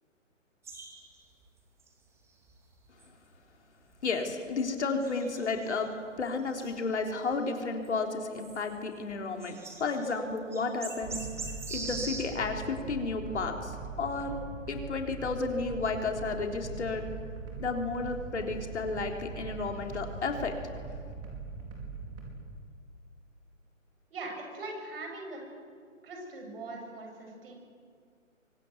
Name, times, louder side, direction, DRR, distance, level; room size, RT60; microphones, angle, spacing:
sound 1, 0.6-1.4 1.8-1.9 2.5-2.6 3.0-3.1 3.9-4.0 5.0-5.9 6.5-7.3 7.8-7.9 8.3-8.8 9.1-9.2 9.4-10.2 10.5-12.2, right 3 dB, 5° right, 2.4 m, -42 dB
voice 1, 4.0-5.9 6.2-11.2 11.7-14.4 14.7-17.0 17.6-20.5, left 4 dB, 60° left, 3 dB, 3.6 m, -32 dB
sound 2, 11.0-22.3, right 4 dB, 25° right, 5.1 m, -41 dB
voice 2, 24.1-25.4 26.0-27.5, right 2 dB, 45° right, 2 dB, 7.7 m, -41 dB
24.5 x 23.0 x 9.6 m, 2.1 s
figure-of-eight pair, 145°, 40 cm